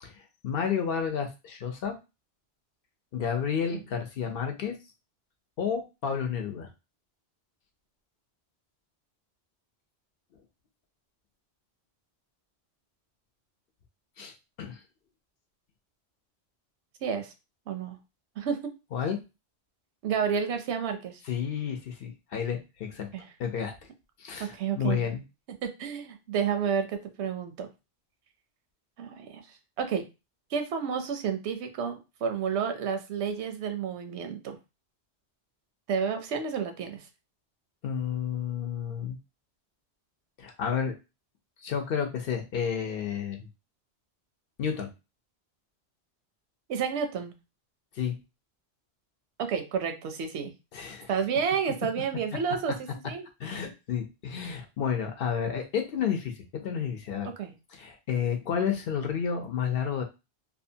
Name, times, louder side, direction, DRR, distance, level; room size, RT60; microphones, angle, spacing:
voice 1, 0.0-1.9 3.1-4.7 5.6-6.7 14.2-14.8 18.9-19.2 21.2-23.1 23.4-23.7 24.2-25.2 37.8-39.2 40.4-40.9 41.6-43.5 44.6-44.9 47.9-48.2 50.7-51.1 53.4-57.3 57.7-60.0, left 7 dB, 65° left, 4 dB, 0.7 m, -31 dB
voice 2, 17.0-17.3 17.7-18.0 18.4-18.6 20.0-21.2 23.1-23.2 24.4-25.0 25.6-27.7 29.0-29.4 29.8-30.0 30.5-34.6 35.9-37.0 46.7-47.3 49.4-50.5 51.1-53.3 57.2-57.5, right 7 dB, 85° right, 7 dB, 0.9 m, -30 dB
2.7 x 2.2 x 2.6 m, 0.26 s
omnidirectional pair, 1.1 m